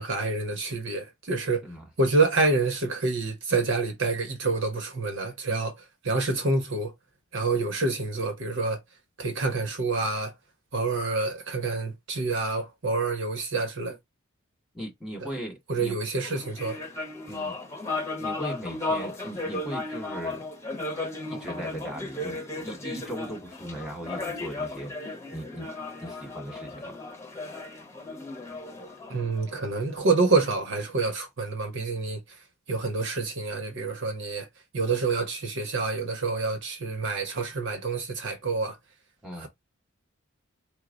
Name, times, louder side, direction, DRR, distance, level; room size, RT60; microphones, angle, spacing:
voice 1, 0.0-1.7 2.0-6.9 7.3-8.8 9.2-10.3 10.7-14.0 15.2-15.3 15.7-16.8 29.1-34.5 34.7-38.8 39.4-39.5, right 3 dB, 60° right, 1.0 m, -27 dB
voice 2, 14.7-15.9 17.3-17.5 18.2-20.4 21.3-25.7 26.0-27.0 39.2-39.5, right 1 dB, 5° right, 1.8 m, -38 dB
sound 1, 16.2-29.9, left 2 dB, 15° left, 1.0 m, -35 dB
4.7 x 2.1 x 3.7 m
head